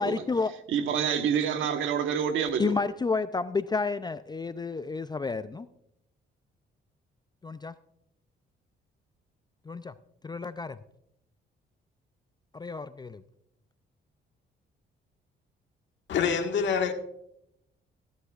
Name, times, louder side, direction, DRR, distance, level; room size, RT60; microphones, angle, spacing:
voice 1, 0.0-0.5 2.6-5.7 7.4-7.8 9.7-9.9 10.2-10.8 12.5-13.2, left 4 dB, 20° left, 0.4 m, -30 dB
voice 2, 0.7-2.7, right 8 dB, 80° right, 1.2 m, -27 dB
voice 3, 16.1-16.9, left 6 dB, 65° left, 1.6 m, -26 dB
15.5 x 11.5 x 2.4 m
cardioid pair, 90°, 20 cm